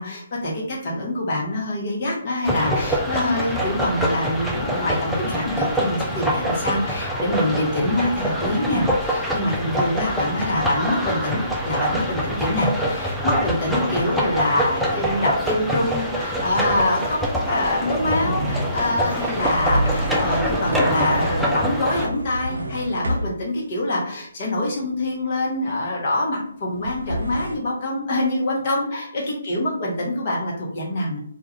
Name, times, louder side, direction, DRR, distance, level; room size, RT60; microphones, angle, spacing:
voice 1, 0.0-17.2 17.5-31.2, left 1 dB, 40° left, -2 dB, 0.8 m, -25 dB
sound 1, 2.4-22.1, equal, ahead, 0.3 m, -25 dB
sound 2, 18.0-23.4 26.7-27.6, right 1 dB, 75° right, 0.4 m, -28 dB
2.3 x 2.2 x 3.0 m, 0.64 s
figure-of-eight pair, 140°, 0 cm